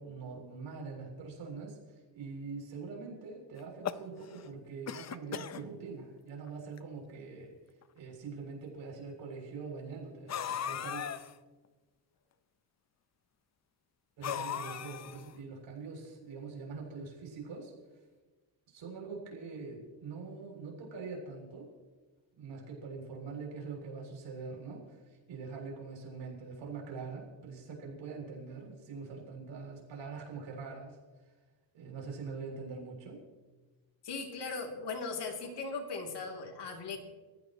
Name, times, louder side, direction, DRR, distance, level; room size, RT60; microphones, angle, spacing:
voice 1, 0.0-7.5 7.9-11.0 14.2-17.7 18.7-21.7 22.3-31.0 31.7-33.2, right 4 dB, 65° right, 0 dB, 7.2 m, -43 dB
sound 1, 3.6-4.5 4.9-5.6 6.4-6.5 6.8-6.9 7.8-7.9 10.3-11.3 14.2-15.4, left 9 dB, 35° left, 0.6 m, -37 dB
voice 2, 34.0-37.0, left 4 dB, 55° left, 2 dB, 3.1 m, -38 dB
29.5 x 16.0 x 3.1 m, 1.3 s
cardioid pair, 160°, 48 cm